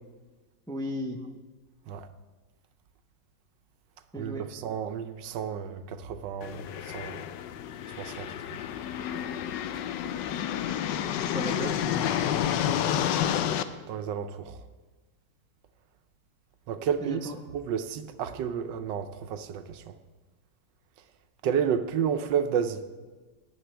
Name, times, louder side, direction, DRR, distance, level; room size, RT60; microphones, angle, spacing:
voice 1, 0.7-1.2 4.1-4.4 11.2-12.9 17.0-17.4, equal, 5° left, 0.5 m, -36 dB
voice 2, 4.2-7.2 8.0-8.6 13.9-14.6 16.7-19.9 21.4-22.8, right 8 dB, 90° right, 1.4 m, -31 dB
sound 1, 6.4-13.6, left 10 dB, 80° left, 1.3 m, -30 dB
17.5 x 10.5 x 3.4 m
omnidirectional pair, 1.9 m